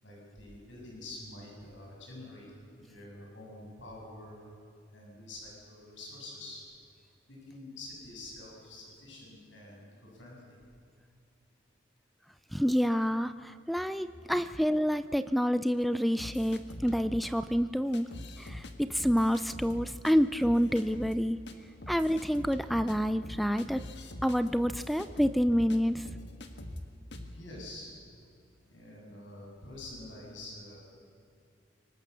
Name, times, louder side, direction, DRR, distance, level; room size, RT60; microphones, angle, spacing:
voice 1, 0.0-4.4 4.9-6.7 7.3-10.6 27.3-27.9 28.7-30.8, left 2 dB, 75° left, -2 dB, 7.7 m, -47 dB
voice 2, 12.5-18.1 18.4-21.4 21.9-23.8 24.2-26.1, equal, ahead, 12 dB, 0.4 m, -28 dB
sound 1, 16.2-17.3 17.9-18.7 19.0-20.1 20.4-21.2 21.5-21.6 21.8-25.8 26.1-26.8 27.1-27.3, left 1 dB, 60° left, 1.8 m, -43 dB
23.5 x 19.0 x 7.0 m, 2.6 s
head